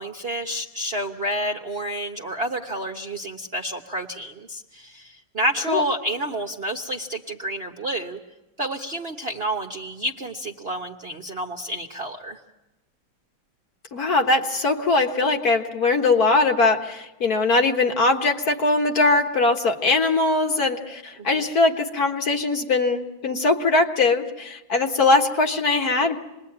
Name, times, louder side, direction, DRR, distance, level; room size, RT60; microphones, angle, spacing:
voice 1, 0.0-8.2 8.6-12.4 21.2-21.5, right 1 dB, 40° right, 1 dB, 0.9 m, -29 dB
voice 2, 13.9-26.2, left 3 dB, 50° left, 4 dB, 1.8 m, -21 dB
27.0 x 21.0 x 8.7 m, 0.98 s
omnidirectional pair, 2.2 m